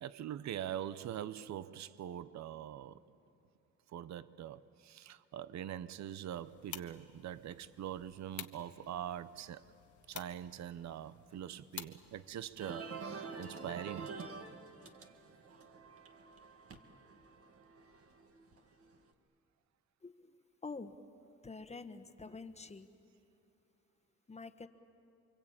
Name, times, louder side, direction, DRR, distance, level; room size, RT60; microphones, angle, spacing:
voice 1, 0.0-3.0 3.9-9.6 10.1-14.1, right 10 dB, 65° right, 0.8 m, -43 dB
sound 1, 6.3-12.7, left 11 dB, 75° left, 1.3 m, -52 dB
sound 2, 12.6-19.0, right 4 dB, 50° right, 1.9 m, -47 dB
voice 2, 20.0-20.3 20.6-21.0 21.4-22.9 24.3-24.7, left 4 dB, 20° left, 1.4 m, -47 dB
28.5 x 23.5 x 8.8 m
cardioid pair, 90°, 30 cm